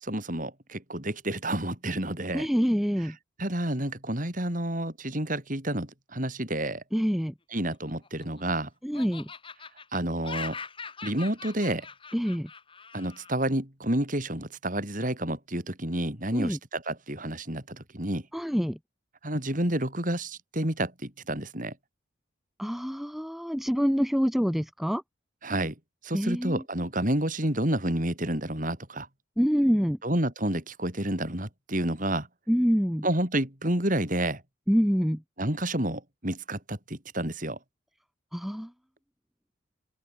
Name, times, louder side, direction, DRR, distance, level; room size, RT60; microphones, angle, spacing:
voice 1, 0.0-2.5 3.4-6.8 7.5-8.7 9.9-10.6 11.0-11.9 12.9-18.3 19.2-21.7 25.4-25.7 26.0-29.1 30.0-32.3 33.0-34.4 35.4-37.6, right 1 dB, 40° right, 4.8 m, -29 dB
voice 2, 2.3-3.1 6.9-7.3 8.8-9.3 12.1-12.5 16.3-16.6 18.3-18.8 22.6-25.0 26.1-26.6 29.4-30.0 32.5-33.0 34.7-35.2 38.3-38.7, equal, ahead, 1.0 m, -26 dB
Laughter, 7.7-8.6 8.9-13.3, left 5 dB, 25° left, 6.1 m, -42 dB
open air
head